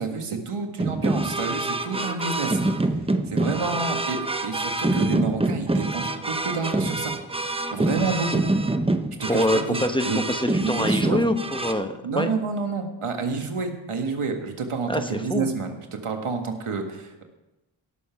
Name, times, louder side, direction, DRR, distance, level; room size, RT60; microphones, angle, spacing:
voice 1, 0.0-2.9 3.3-7.2 7.7-8.4 9.2-10.2 10.6-11.2 12.0-17.2, right 4 dB, 80° right, 4 dB, 1.7 m, -29 dB
sound 1, 0.8-11.7, right 2 dB, 10° right, 0.7 m, -26 dB
voice 2, 9.3-12.3 14.9-15.5, left 1 dB, 10° left, 6 dB, 1.0 m, -25 dB
17.0 x 7.0 x 5.8 m, 1.0 s
wide cardioid pair, 75°, 50 cm